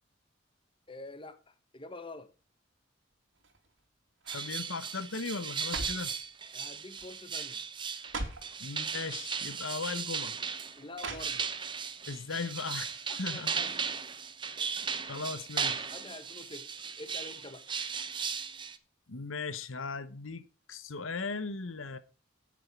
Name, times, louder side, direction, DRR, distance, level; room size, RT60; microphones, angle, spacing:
voice 1, 0.9-2.3 6.5-7.6 10.8-11.5 13.1-13.9 15.9-17.7, left 2 dB, 25° left, 1.1 m, -47 dB
sound 1, 3.4-3.8 4.2-4.6 5.3-6.2 7.0-7.2 7.5-7.6 8.0-8.5 9.5-9.6 11.0-11.7 12.1-12.2, right 2 dB, 75° right, 2.6 m, -40 dB
voice 2, 4.3-6.1 8.6-10.4 12.1-13.6 15.1-15.9 19.1-22.0, left 4 dB, 85° left, 0.9 m, -38 dB
sound 2, 4.3-18.8, right 6 dB, 25° right, 0.8 m, -37 dB
9.8 x 8.5 x 6.0 m
head